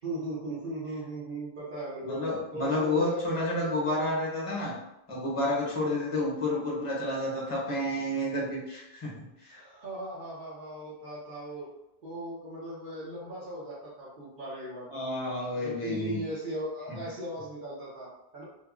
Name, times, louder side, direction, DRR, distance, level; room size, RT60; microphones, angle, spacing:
voice 1, 0.0-4.1 9.5-11.7 12.0-15.0 15.6-18.4, right 1 dB, 60° right, -8 dB, 0.9 m, -38 dB
voice 2, 2.0-4.8 5.1-9.6 14.9-16.2 16.9-17.0, left 1 dB, 35° left, -4 dB, 0.8 m, -30 dB
2.9 x 2.2 x 2.4 m, 0.91 s
omnidirectional pair, 1.0 m